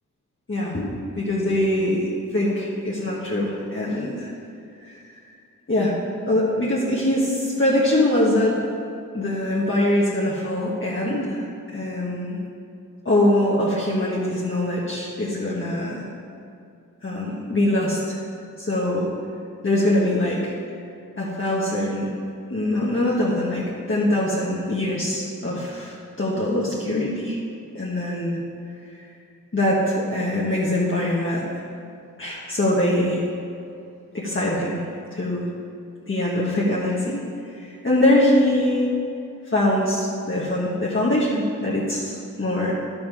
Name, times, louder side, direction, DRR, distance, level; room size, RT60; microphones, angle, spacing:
voice 1, 0.5-4.3 4.8-5.0 5.7-5.9 6.3-8.6 9.1-11.4 11.7-12.4 13.0-16.1 17.0-18.2 18.6-19.1 19.6-20.5 21.2-22.1 22.5-27.4 27.7-28.4 29.5-31.5 32.2-33.2 34.1-34.8 35.1-35.4 36.1-38.9 39.5-42.7, left 1 dB, 40° left, -6 dB, 1.5 m, -23 dB
10.0 x 7.3 x 4.8 m, 2.5 s
wide cardioid pair, 70°, 32 cm